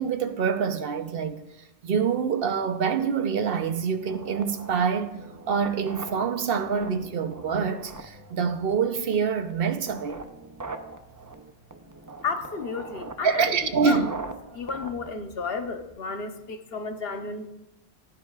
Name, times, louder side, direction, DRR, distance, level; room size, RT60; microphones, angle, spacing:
voice 1, 0.0-1.5 1.8-10.2 13.2-14.1, right 6 dB, 60° right, 0.9 m, -26 dB
sound 1, 4.0-16.0, right 3 dB, 25° right, 0.5 m, -42 dB
voice 2, 12.2-14.1 14.5-17.5, left 4 dB, 65° left, 1.1 m, -32 dB
16.0 x 10.5 x 2.4 m
omnidirectional pair, 1.1 m